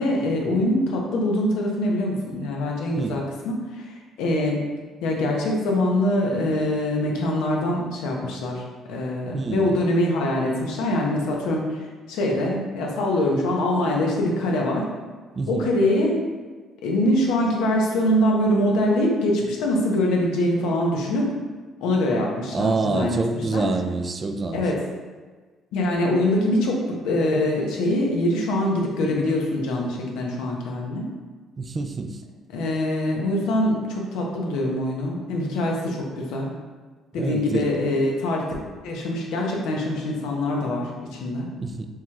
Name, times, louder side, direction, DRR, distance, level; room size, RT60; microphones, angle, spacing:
voice 1, 0.0-4.6 5.0-8.6 8.9-14.9 15.5-16.1 16.8-21.3 21.8-23.2 23.5-23.6 24.5-24.8 25.7-31.1 32.5-36.5 37.1-38.5 38.8-41.5, left 1 dB, 85° left, -1 dB, 0.7 m, -23 dB
voice 2, 9.3-9.7 15.4-15.7 22.5-24.7 31.6-32.2 37.1-37.7 41.6-41.9, right 3 dB, 30° right, 6 dB, 0.3 m, -26 dB
4.7 x 2.9 x 2.3 m, 1.4 s
cardioid pair, 90°, 0 cm